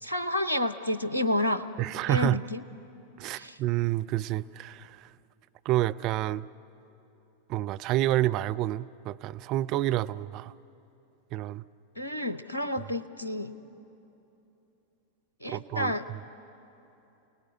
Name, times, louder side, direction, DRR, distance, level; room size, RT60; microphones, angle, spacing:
voice 1, 0.0-1.7 2.1-2.6 3.3-3.6 12.0-13.5 15.4-16.0, left 1 dB, 80° left, 11 dB, 0.8 m, -30 dB
voice 2, 1.8-2.4 3.2-5.1 5.6-6.5 7.5-10.5 11.3-11.6 15.5-16.2, right 14 dB, 40° right, 12 dB, 0.4 m, -29 dB
29.5 x 18.0 x 8.3 m, 3.0 s
figure-of-eight pair, 90°, 0 cm